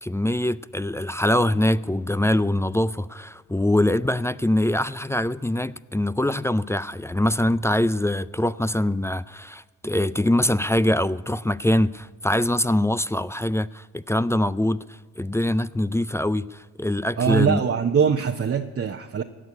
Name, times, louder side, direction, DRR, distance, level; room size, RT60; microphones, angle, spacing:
voice 1, 0.0-17.6, left 1 dB, 10° left, 0.4 m, -23 dB
voice 2, 17.2-19.2, right 7 dB, 40° right, 0.9 m, -22 dB
16.5 x 6.3 x 9.5 m
supercardioid pair, 50°, 34 cm